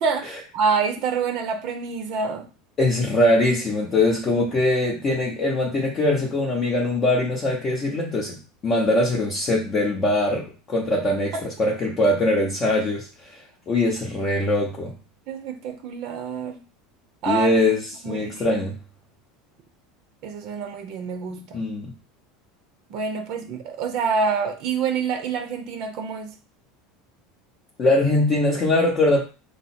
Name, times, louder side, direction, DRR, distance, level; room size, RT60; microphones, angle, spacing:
voice 1, 0.0-2.5 11.3-11.5 15.3-16.6 17.2-17.7 18.0-18.6 20.2-21.6 22.9-26.3, right 5 dB, 50° right, 0.7 m, -27 dB
voice 2, 2.8-14.9 17.3-18.8 21.5-21.9 27.8-29.2, left 1 dB, 25° left, 0.8 m, -22 dB
4.8 x 2.0 x 4.3 m
supercardioid pair, 145°, 0 cm